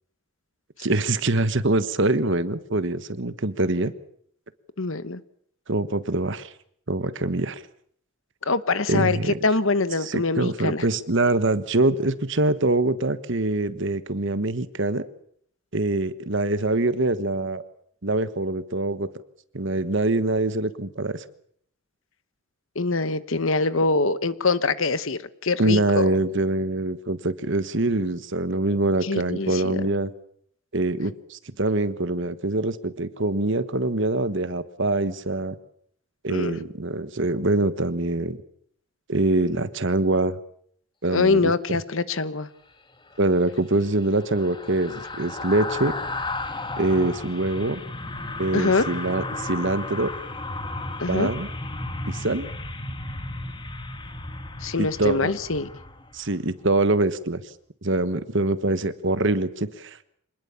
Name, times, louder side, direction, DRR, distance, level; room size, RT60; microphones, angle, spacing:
voice 1, 0.8-3.9 5.7-6.5 6.9-7.6 8.9-9.4 10.0-15.0 15.7-17.6 18.0-19.1 19.5-21.2 25.6-30.1 30.7-35.5 36.2-38.4 39.1-40.3 41.0-41.5 43.2-46.0 46.8-47.8 48.4-50.1 51.1-51.5 52.1-52.5 54.8-55.3 56.1-57.4 57.8-60.0, right 2 dB, 55° right, 13 dB, 1.3 m, -24 dB
voice 2, 4.8-5.2 8.4-10.8 22.7-26.1 29.0-29.8 36.3-36.6 41.1-42.5 48.5-48.9 51.0-51.3 54.6-55.7, left 3 dB, 65° left, 15 dB, 1.1 m, -24 dB
sound 1, 43.1-56.4 56.8-57.0, left 2 dB, 20° left, 1.5 m, -34 dB
25.5 x 20.0 x 7.1 m, 0.65 s
head